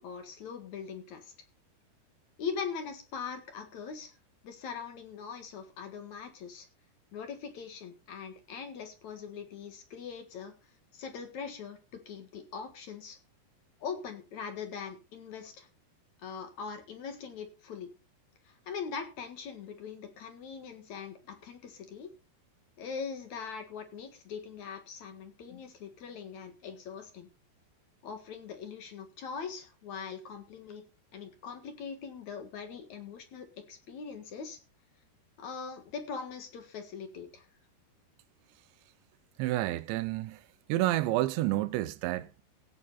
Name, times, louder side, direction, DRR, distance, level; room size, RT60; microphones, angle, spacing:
voice 1, 0.0-1.3 2.4-4.1 4.4-6.7 7.1-10.5 10.9-13.2 13.8-15.7 16.2-17.9 18.4-22.1 22.8-27.3 28.0-30.8 31.1-34.6 35.4-37.5, left 6 dB, 55° left, 2.4 m, -41 dB
voice 2, 39.4-40.4 40.7-42.4, right 16 dB, 90° right, 3.1 m, -29 dB
16.5 x 8.8 x 4.1 m
omnidirectional pair, 5.0 m